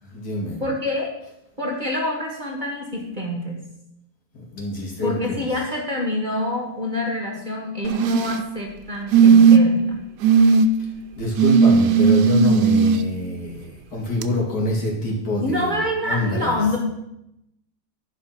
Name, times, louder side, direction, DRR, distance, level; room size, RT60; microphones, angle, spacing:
voice 1, 0.0-0.6 4.5-5.4 11.2-15.8 16.0-16.6, left 2 dB, 65° left, -3 dB, 2.9 m, -26 dB
voice 2, 0.6-1.1 1.6-3.6 5.0-10.0 15.4-16.8, left 1 dB, 30° right, -1 dB, 1.5 m, -26 dB
sound 1, 7.8-8.4 9.1-9.8 10.2-10.7 11.4-13.0 14.2-14.3, right 5 dB, 75° right, 1.2 m, -15 dB
10.5 x 5.2 x 5.7 m, 0.82 s
omnidirectional pair, 1.9 m